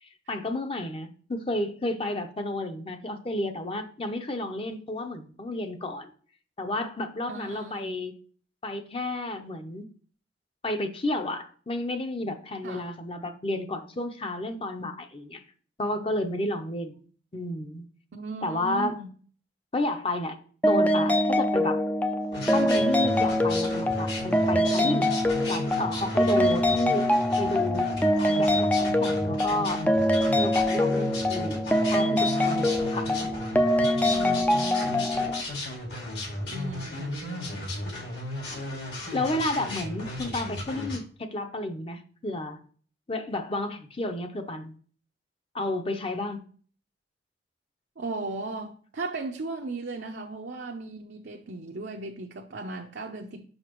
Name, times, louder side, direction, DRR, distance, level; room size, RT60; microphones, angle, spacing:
voice 1, 0.0-6.1 6.6-8.1 8.6-9.9 10.6-15.4 15.8-17.0 17.3-17.8 18.4-19.0 19.7-20.4 20.7-21.8 22.4-25.1 25.5-27.1 27.4-27.9 28.4-29.9 30.3-33.1 34.8-35.3 39.1-42.6 43.1-44.7 45.5-46.4, left 2 dB, 30° left, 0.7 m, -31 dB
voice 2, 7.3-8.0 12.6-12.9 18.1-19.1 26.4-26.8 34.0-35.1 36.5-37.7 48.0-53.5, right 3 dB, 70° right, 0.6 m, -37 dB
sound 1, 20.6-35.4, left 1 dB, 10° left, 0.4 m, -24 dB
sound 2, 22.3-41.0, left 1 dB, 65° left, 2.3 m, -35 dB
6.5 x 5.7 x 3.0 m
head